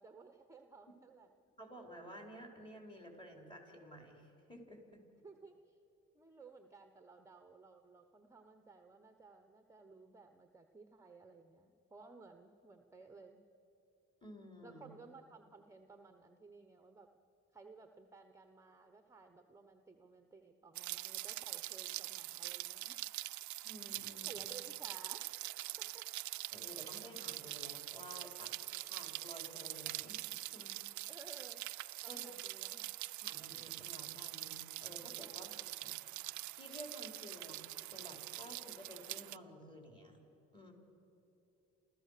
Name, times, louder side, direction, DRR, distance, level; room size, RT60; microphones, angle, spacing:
voice 1, 0.0-1.3 5.2-5.8 6.1-13.5 14.6-17.1 17.5-23.1 24.3-25.2 25.8-26.1 31.1-31.7 32.0-33.0 35.2-35.7, right 4 dB, 10° right, 6 dB, 1.0 m, -57 dB
voice 2, 1.6-5.0 14.2-14.8 23.6-24.5 26.5-31.1 32.1-32.2 33.2-35.5 35.8-35.9 36.5-40.2 40.5-40.7, equal, 15° left, 2 dB, 4.5 m, -53 dB
Rain, 20.7-39.4, right 17 dB, 70° right, 0.4 m, -44 dB
29.5 x 14.0 x 6.7 m, 2.9 s
cardioid pair, 90°, 30 cm